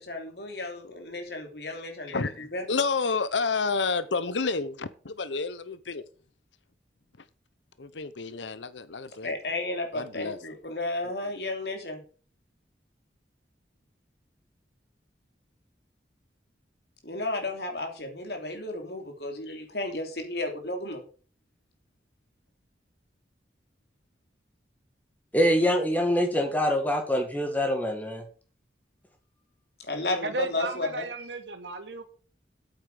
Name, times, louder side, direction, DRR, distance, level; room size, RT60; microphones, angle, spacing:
voice 1, 0.0-2.7 9.2-12.0 17.0-21.0 29.9-31.1, left 2 dB, 65° left, 3.1 m, -33 dB
voice 2, 2.1-6.0 7.8-9.3 9.9-10.5, left 4 dB, 85° left, 0.8 m, -30 dB
voice 3, 25.3-28.2, equal, 10° left, 1.7 m, -24 dB
voice 4, 30.2-32.0, right 3 dB, 85° right, 2.2 m, -35 dB
8.8 x 8.1 x 6.8 m
head